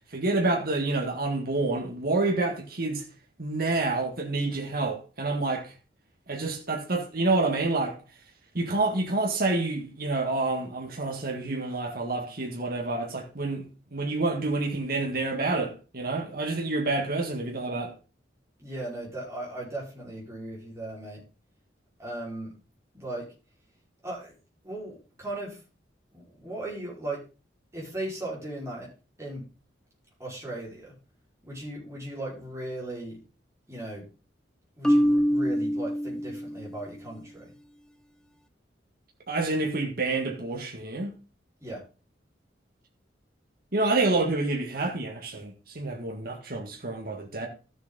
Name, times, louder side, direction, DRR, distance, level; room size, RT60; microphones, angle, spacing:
voice 1, 0.1-3.0 3.4-5.8 6.3-8.0 8.5-18.0 39.3-41.1 43.7-47.5, right 2 dB, 55° right, 1.7 m, -28 dB
voice 2, 18.6-21.2 22.0-22.5 22.9-23.3 24.0-24.3 24.6-25.6 26.1-27.2 27.7-28.9 29.2-29.4 30.2-30.9 31.4-33.2 33.7-34.1 34.8-37.5 41.6-41.8, right 1 dB, 15° right, 4.9 m, -37 dB
Marimba xylophone, 34.8-36.9, equal, 5° left, 0.5 m, -25 dB
13.0 x 7.2 x 4.0 m
head